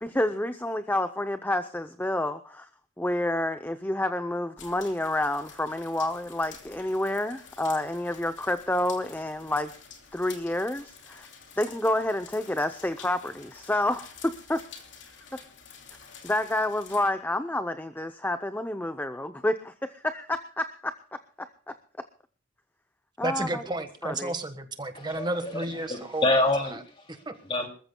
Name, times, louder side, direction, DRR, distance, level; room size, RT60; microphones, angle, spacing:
voice 1, 0.0-2.7 3.0-9.7 10.1-11.3 11.6-14.6 15.3-15.4 16.2-21.7 23.2-23.6 24.0-24.3, left 1 dB, 10° left, 0.6 m, -29 dB
sound 1, 4.6-17.1, left 6 dB, 70° left, 2.9 m, -49 dB
voice 2, 23.2-26.4 27.3-27.4, right 2 dB, 20° right, 1.3 m, -32 dB
voice 3, 24.9-27.7, left 2 dB, 25° left, 2.4 m, -28 dB
26.5 x 14.5 x 2.2 m
head